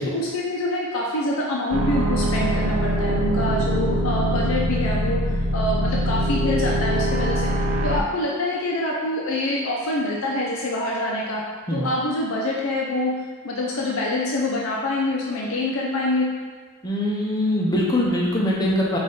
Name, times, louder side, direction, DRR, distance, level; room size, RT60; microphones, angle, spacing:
voice 1, 0.1-7.5 7.8-11.4 11.7-13.1 13.4-16.3, left 1 dB, 85° left, -3 dB, 0.6 m, -25 dB
sound 1, 1.7-8.0, equal, 80° right, 0.5 m, -23 dB
voice 2, 16.8-19.0, left 1 dB, 20° left, -4 dB, 0.5 m, -22 dB
5.5 x 2.5 x 3.8 m, 1.5 s
head